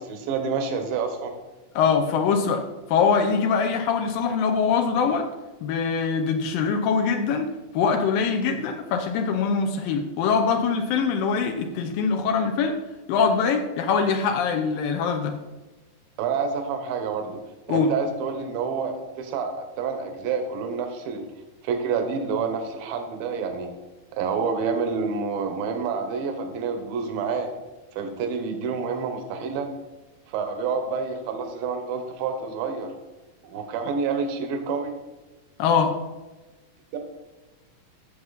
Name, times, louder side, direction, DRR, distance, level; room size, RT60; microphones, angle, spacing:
voice 1, 0.0-1.3 16.2-17.4 17.7-21.2 21.6-23.7 24.1-27.5 28.0-29.7 30.3-32.9 33.4-34.9 36.9-37.0, right 5 dB, 80° right, 6 dB, 2.8 m, -28 dB
voice 2, 1.8-2.6 2.9-5.3 5.6-7.5 7.7-12.8 13.1-15.4 17.7-17.9 35.6-36.0, left 5 dB, 80° left, 4 dB, 2.4 m, -23 dB
13.0 x 7.2 x 4.0 m, 1.2 s
omnidirectional pair, 4.1 m